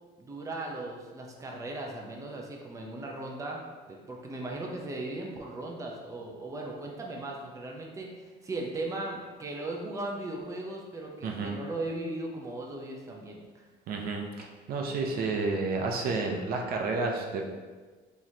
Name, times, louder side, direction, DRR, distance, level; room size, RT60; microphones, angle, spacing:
voice 1, 0.2-3.6 3.9-13.6, right 2 dB, 20° right, -1 dB, 0.6 m, -37 dB
voice 2, 11.2-11.6 13.9-17.5, right 3 dB, 65° right, 1 dB, 0.6 m, -31 dB
3.9 x 3.1 x 2.7 m, 1.4 s
cardioid pair, 110°, 17 cm